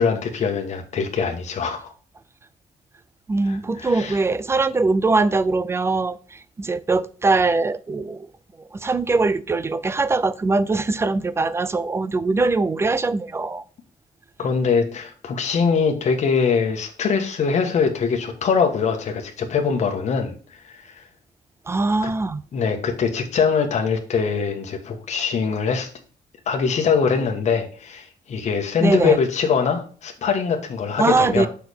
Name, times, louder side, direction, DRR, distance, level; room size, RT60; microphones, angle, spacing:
voice 1, 0.0-1.9 3.4-4.2 14.4-20.3 20.7-20.9 22.0-22.1 22.5-25.9 26.5-31.5, left 5 dB, 50° left, 1.3 m, -22 dB
voice 2, 3.3-6.2 6.6-8.3 8.8-13.6 21.7-22.4 28.8-29.2 31.0-31.5, right 3 dB, 15° right, 0.4 m, -21 dB
6.4 x 5.8 x 3.4 m
wide cardioid pair, 170°, 15 cm